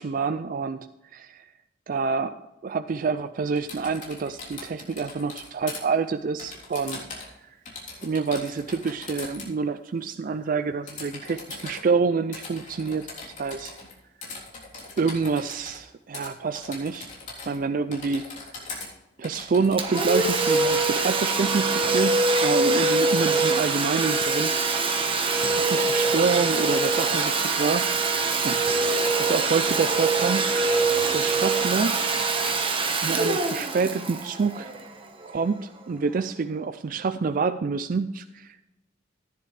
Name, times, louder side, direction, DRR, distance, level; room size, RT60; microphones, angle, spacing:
voice 1, 0.0-1.5 1.9-2.4 2.6-7.0 7.4-7.6 8.0-13.7 15.0-17.1 17.5-18.3 19.2-24.6 25.5-27.9 28.4-30.5 31.0-32.0 33.0-34.7 35.2-38.7, right 4 dB, 45° right, 10 dB, 0.4 m, -27 dB
Typing, 3.6-5.8 6.4-7.4 7.7-9.5 10.9-11.8 12.3-13.9 14.2-15.8 16.1-16.3 16.5-17.6 17.9-18.9 19.2-21.1, left 3 dB, 40° left, 3.5 m, -40 dB
Domestic sounds home sounds, 19.8-35.2, right 3 dB, 25° right, 1.2 m, -24 dB
15.0 x 10.0 x 3.3 m, 0.99 s
head